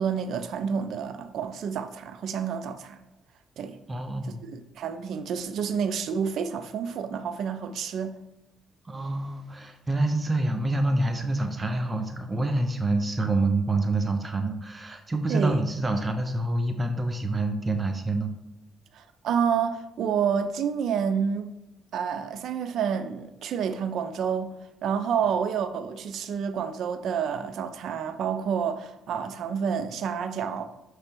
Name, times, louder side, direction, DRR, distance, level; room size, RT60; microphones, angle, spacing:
voice 1, 0.0-3.0 3.6-3.8 4.3-8.2 15.3-15.6 18.9-21.5 21.9-24.6 24.8-30.6, right 7 dB, 75° right, 0.5 m, -29 dB
voice 2, 3.9-4.5 8.8-18.3, right 2 dB, 25° right, 0.6 m, -27 dB
6.7 x 3.3 x 4.5 m
cardioid pair, 90°, 0 cm